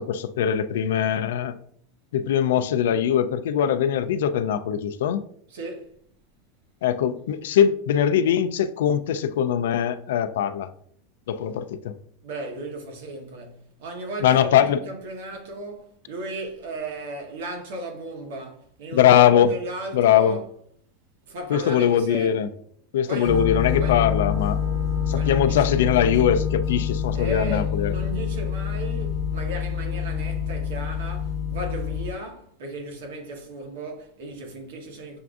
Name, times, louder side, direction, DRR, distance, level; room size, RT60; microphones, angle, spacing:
voice 1, 0.0-1.6 2.1-5.2 6.8-10.7 11.3-11.9 14.2-14.8 18.9-19.5 19.9-20.4 21.5-22.5 22.9-24.6 25.1-27.9, left 9 dB, 85° left, 0.3 m, -21 dB
voice 2, 5.5-5.9 12.2-20.5 21.3-22.4 23.1-23.4 23.8-24.0 25.1-25.7 27.1-35.2, right 2 dB, 70° right, 1.1 m, -36 dB
sound 1, 23.2-32.1, left 7 dB, 20° left, 1.0 m, -26 dB
6.8 x 2.5 x 2.4 m
supercardioid pair, 170°, 0 cm